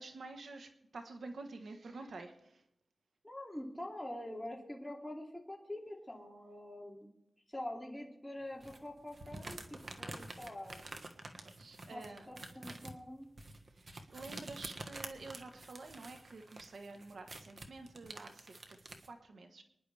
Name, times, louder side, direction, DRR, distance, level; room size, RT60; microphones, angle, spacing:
voice 1, 0.0-2.6 11.4-12.3 13.7-19.6, right 3 dB, 75° right, 6 dB, 1.2 m, -49 dB
voice 2, 3.2-7.1 7.5-10.8 11.9-13.3, left 1 dB, 5° left, -3 dB, 2.7 m, -45 dB
sound 1, 8.6-19.1, right 2 dB, 50° right, 1.5 m, -49 dB
24.5 x 10.5 x 3.4 m, 0.80 s
wide cardioid pair, 85°, 0 cm